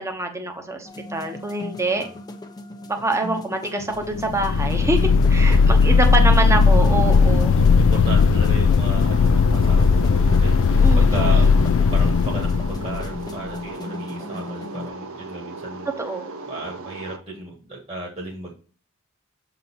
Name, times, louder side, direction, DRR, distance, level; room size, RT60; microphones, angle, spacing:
voice 1, 0.0-2.0 2.9-7.6 10.8-11.5 16.0-16.3, right 2 dB, 15° right, 4 dB, 1.1 m, -25 dB
sound 1, 0.8-14.9, left 2 dB, 20° left, 0.7 m, -38 dB
sound 2, 4.1-13.4, left 5 dB, 65° left, 0.4 m, -17 dB
voice 2, 7.5-11.5 11.9-15.9 16.5-18.5, right 2 dB, 30° right, -2 dB, 1.6 m, -35 dB
sound 3, 9.0-17.2, right 3 dB, 70° right, 0.9 m, -37 dB
7.3 x 4.0 x 4.5 m, 0.39 s
head